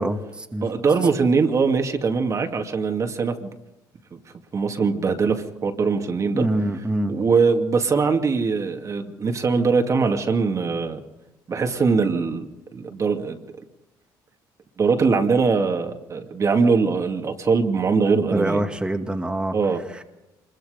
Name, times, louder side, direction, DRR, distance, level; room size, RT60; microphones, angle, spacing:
voice 1, 0.0-0.7 6.3-7.1 18.3-19.5, right 1 dB, 10° right, 3 dB, 2.1 m, -25 dB
voice 2, 0.6-3.5 4.5-6.5 7.1-11.0 11.5-13.4 14.8-18.6 19.5-19.8, right 4 dB, 40° right, 4 dB, 2.4 m, -22 dB
25.5 x 22.0 x 5.2 m, 0.98 s
cardioid pair, 90°, 8 cm